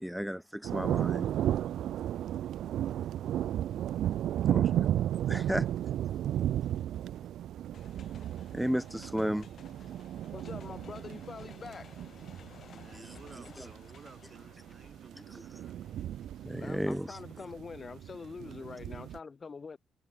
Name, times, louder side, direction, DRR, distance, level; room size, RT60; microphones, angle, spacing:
voice 1, 0.0-1.3 4.4-4.9 5.3-5.7 8.5-9.5 12.9-13.7 15.3-15.6 16.4-17.2, equal, ahead, 0.8 m, -34 dB
sound 1, 0.6-19.2, right 11 dB, 75° right, 0.6 m, -34 dB
sound 2, 7.7-17.4, left 8 dB, 55° left, 2.7 m, -57 dB
voice 2, 10.3-11.9 16.6-19.8, left 5 dB, 35° left, 2.3 m, -44 dB
voice 3, 12.6-15.8, right 6 dB, 45° right, 2.7 m, -54 dB
cardioid pair, 90°, 0 cm